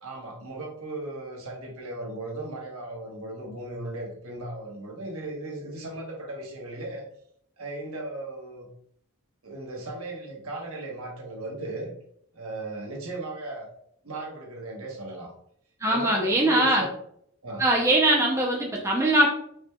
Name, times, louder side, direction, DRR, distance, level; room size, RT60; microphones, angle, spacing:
voice 1, 0.0-7.1 7.6-8.7 9.4-11.9 12.3-13.7 14.0-15.3 15.9-16.8 17.4-17.6, right 2 dB, 80° right, -1 dB, 1.1 m, -37 dB
voice 2, 15.8-16.9 17.6-19.3, right 1 dB, 15° right, -2 dB, 0.5 m, -21 dB
4.9 x 3.2 x 2.3 m, 0.68 s
head